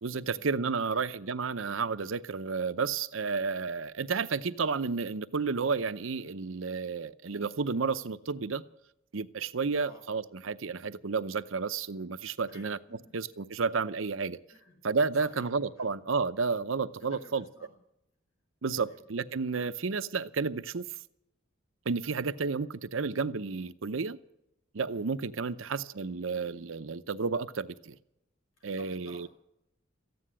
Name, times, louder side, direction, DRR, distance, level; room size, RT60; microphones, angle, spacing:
voice 1, 0.0-8.6 9.1-12.8 13.1-14.4 14.8-17.4 18.6-20.8 21.9-24.2 24.7-28.0 28.6-29.3, right 4 dB, 70° right, 0.7 m, -31 dB
voice 2, 12.5-13.2 14.5-14.8 15.2-16.0 17.0-17.8 18.7-19.0 25.4-25.6 28.6-29.3, left 2 dB, 80° left, 5.2 m, -55 dB
15.0 x 9.5 x 9.9 m
head